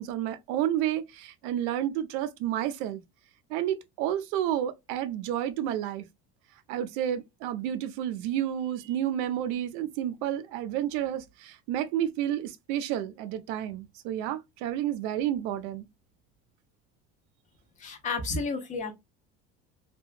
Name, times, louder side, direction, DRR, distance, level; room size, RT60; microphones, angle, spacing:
voice 1, 0.0-3.0 3.5-6.0 6.7-15.8, right 11 dB, 80° right, 0.5 m, -30 dB
voice 2, 17.8-18.9, left 4 dB, 25° left, 0.5 m, -31 dB
2.8 x 2.2 x 2.4 m
cardioid pair, 170°, 31 cm